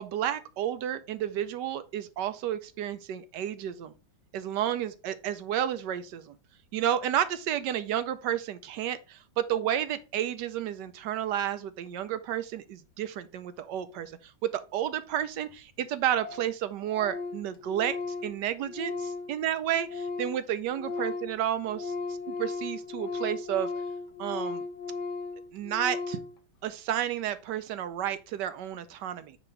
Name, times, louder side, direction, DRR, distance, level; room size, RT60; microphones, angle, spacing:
voice 1, 0.0-3.9 4.3-6.3 6.7-18.0 18.2-18.9 19.3-21.8 22.3-23.7 24.2-24.6 25.5-26.2 26.6-29.4, right 10 dB, 70° right, 1.2 m, -31 dB
Organ, 15.2-15.3 15.5-15.6 15.8-15.9 16.2-16.5 16.8-20.4 20.7-26.3, left 4 dB, 65° left, 1.5 m, -36 dB
8.7 x 3.0 x 4.5 m
omnidirectional pair, 2.1 m